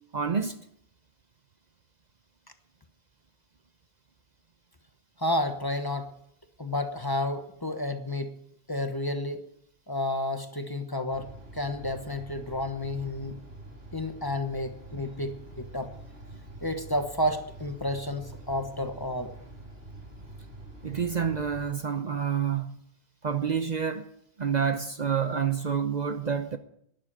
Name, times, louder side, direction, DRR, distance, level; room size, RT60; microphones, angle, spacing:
voice 1, 0.1-0.6 20.8-22.8 23.2-24.1 24.4-26.6, right 7 dB, 45° right, 0.9 m, -28 dB
voice 2, 5.2-6.1 6.6-8.3 8.7-9.4 9.9-13.4 13.9-15.9 16.6-19.3, left 1 dB, 20° left, 1.2 m, -31 dB
sound 1, 11.1-21.7, right 1 dB, 75° right, 4.2 m, -46 dB
11.5 x 10.5 x 8.9 m
omnidirectional pair, 1.1 m